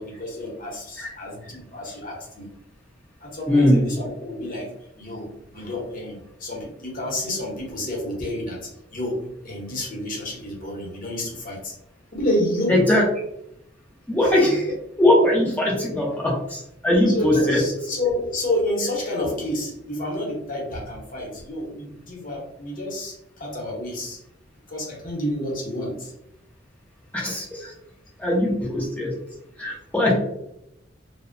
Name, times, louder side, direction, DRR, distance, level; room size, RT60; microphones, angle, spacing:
voice 1, 0.0-2.5 3.2-4.7 5.0-8.6 8.9-11.7 12.1-12.8 14.2-14.3 15.8-15.9 17.1-24.2 24.7-26.1, left 1 dB, 45° left, -2 dB, 0.8 m, -29 dB
voice 2, 3.5-3.9 12.7-13.0 14.1-14.7 15.0-17.6 27.1-27.7 28.2-29.1 29.6-30.2, left 1 dB, 10° left, -4 dB, 0.5 m, -20 dB
2.6 x 2.0 x 2.4 m, 0.81 s
head